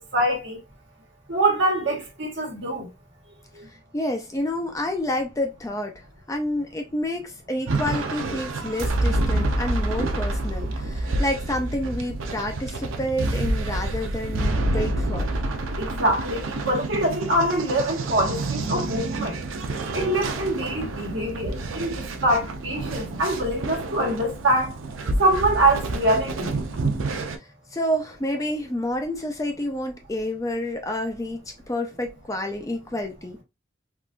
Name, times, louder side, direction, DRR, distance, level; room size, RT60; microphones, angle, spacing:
voice 1, 0.1-0.6 1.3-2.9 15.8-19.4 19.9-24.7 25.2-26.5, right 1 dB, 65° right, 1.3 m, -24 dB
voice 2, 3.7-6.0 6.3-15.3 27.1-33.4, left 1 dB, 15° left, 0.5 m, -29 dB
sound 1, 7.7-27.4, right 2 dB, 90° right, 0.6 m, -28 dB
3.6 x 2.4 x 2.4 m
head